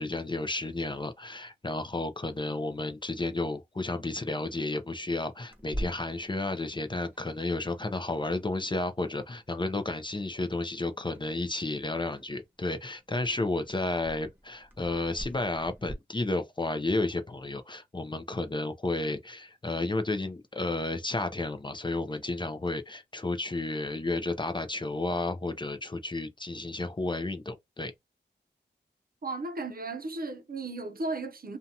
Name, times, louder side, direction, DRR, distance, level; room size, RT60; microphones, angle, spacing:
voice 1, 0.0-27.9, left 2 dB, 25° left, 0.5 m, -32 dB
Clock, 5.5-15.9, equal, 10° right, 0.9 m, -46 dB
voice 2, 29.2-31.6, right 3 dB, 50° right, 0.6 m, -35 dB
2.7 x 2.3 x 2.7 m
wide cardioid pair, 75°, 19 cm